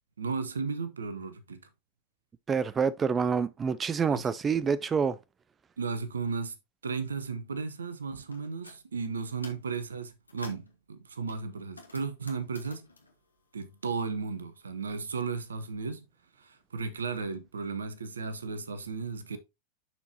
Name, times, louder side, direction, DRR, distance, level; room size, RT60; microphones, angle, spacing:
voice 1, 0.2-1.6 4.1-4.3 5.8-6.6 6.8-12.9 13.5-16.0 16.4-19.4, right 4 dB, 70° right, 0.8 m, -35 dB
voice 2, 2.5-5.2, right 6 dB, 20° right, 0.3 m, -27 dB
sound 1, 8.3-8.8 9.2-9.7 10.1-10.7 11.3-14.2 14.5-15.6, left 3 dB, 80° left, 1.4 m, -52 dB
11.0 x 4.5 x 2.8 m
figure-of-eight pair, 90°, 0 cm